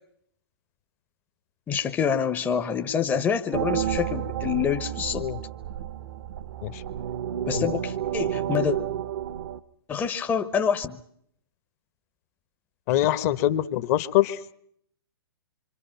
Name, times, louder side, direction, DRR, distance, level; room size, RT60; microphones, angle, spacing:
voice 1, 1.7-5.3 7.5-8.8 9.9-11.0, left 7 dB, 15° left, 7 dB, 0.8 m, -26 dB
sound 1, 3.5-9.6, right 10 dB, 50° right, 0.9 m, -30 dB
voice 2, 12.9-14.4, left 13 dB, 40° left, 14 dB, 1.0 m, -24 dB
26.5 x 25.5 x 5.8 m, 0.70 s
figure-of-eight pair, 120°, 13 cm